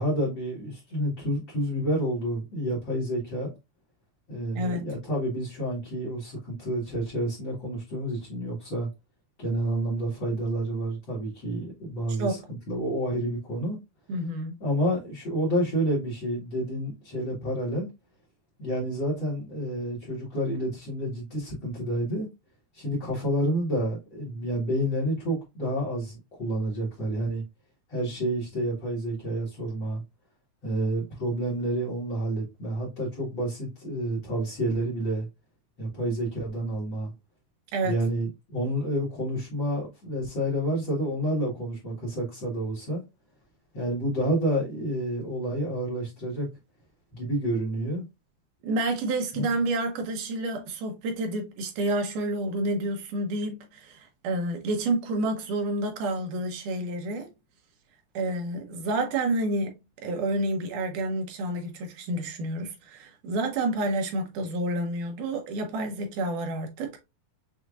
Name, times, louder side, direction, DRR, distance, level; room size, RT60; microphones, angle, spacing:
voice 1, 0.0-3.5 4.3-8.9 9.4-12.4 12.7-13.8 14.6-17.9 18.6-22.3 22.7-27.4 27.9-30.0 30.6-35.3 35.8-37.1 37.8-43.0 43.7-46.5 47.1-48.0 49.3-49.5, right 1 dB, 45° left, 1.8 m, -29 dB
voice 2, 12.1-12.4 14.1-14.6 37.7-38.0 48.6-57.3 58.1-59.7 60.0-67.0, right 2 dB, 70° right, 2.2 m, -29 dB
6.5 x 2.8 x 2.4 m
omnidirectional pair, 4.2 m